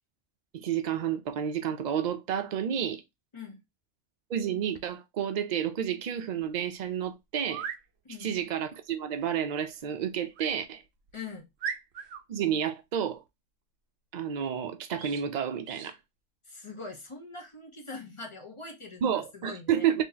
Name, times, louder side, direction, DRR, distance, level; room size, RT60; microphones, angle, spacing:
voice 1, 0.5-3.0 4.3-7.7 8.2-10.8 12.3-13.2 14.1-16.0 19.0-20.0, right 9 dB, 85° right, 0.3 m, -30 dB
sound 1, 7.4-7.8 10.3-10.6 11.1-11.2 11.6-12.2 14.9-15.2 15.6-15.9, right 7 dB, 65° right, 0.8 m, -38 dB
voice 2, 8.0-8.4 11.1-11.5 16.4-19.9, left 4 dB, 30° left, 0.8 m, -43 dB
2.8 x 2.8 x 3.8 m
omnidirectional pair, 1.3 m